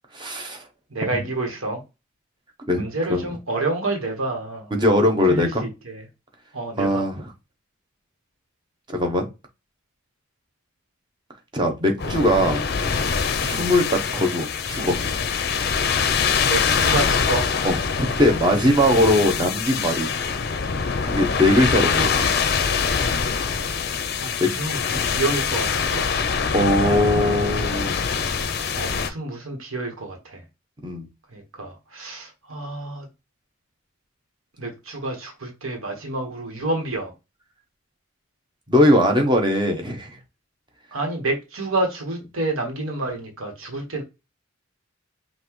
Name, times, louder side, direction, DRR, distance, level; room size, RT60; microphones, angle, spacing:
voice 1, 0.1-0.6 2.7-3.3 4.7-5.6 6.8-7.2 8.9-9.3 11.5-12.6 13.4-15.0 17.6-20.1 21.0-22.3 24.4-24.5 26.5-27.9 30.8-31.1 38.7-40.1, left 1 dB, 20° right, 0.9 m, -20 dB
voice 2, 0.9-1.8 2.8-4.7 5.3-5.5 5.8-6.0 6.5-7.0 13.4-13.7 16.5-17.5 21.5-21.7 23.1-23.3 24.2-26.1 28.8-30.4 31.3-33.1 34.6-37.1 40.9-44.0, right 2 dB, 85° right, 1.4 m, -29 dB
sound 1, 12.0-29.1, left 6 dB, 50° left, 0.5 m, -24 dB
5.7 x 2.6 x 3.1 m
head